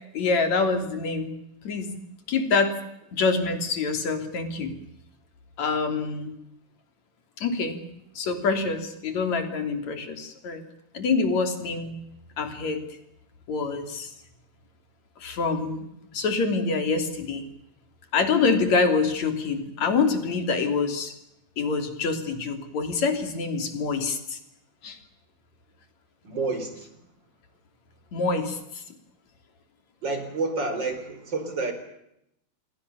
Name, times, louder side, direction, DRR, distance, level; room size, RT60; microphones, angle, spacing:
voice 1, 0.1-1.3 1.6-2.0 2.3-2.7 3.1-4.7 5.6-6.4 7.4-7.8 8.2-10.6 10.9-11.9 12.4-12.8 13.5-14.1 15.2-15.9 16.1-17.5 18.1-21.2 21.6-24.4 24.8-25.0 28.1-28.8, left 4 dB, 50° left, 7 dB, 4.3 m, -26 dB
voice 2, 26.2-26.9 30.0-31.7, right 3 dB, 30° right, 8 dB, 4.7 m, -29 dB
28.5 x 23.5 x 7.0 m, 0.80 s
omnidirectional pair, 4.4 m